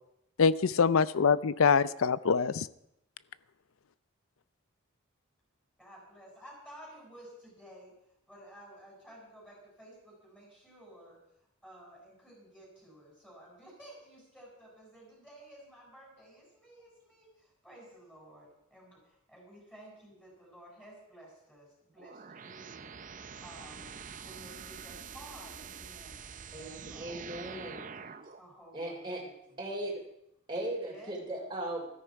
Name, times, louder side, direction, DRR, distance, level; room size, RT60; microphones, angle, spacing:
voice 1, 0.4-2.7, left 5 dB, 75° left, 18 dB, 0.5 m, -24 dB
voice 2, 5.8-11.2 11.6-22.9 23.4-23.9 24.2-27.1 28.4-29.6 30.8-31.2, right 1 dB, 5° left, -3 dB, 6.6 m, -53 dB
sound 1, 22.0-28.4, right 6 dB, 35° right, 0.6 m, -46 dB
voice 3, 26.5-27.9 28.7-29.2 29.6-30.0 30.5-31.8, right 1 dB, 20° right, -2 dB, 3.1 m, -37 dB
15.0 x 13.5 x 4.8 m, 0.81 s
head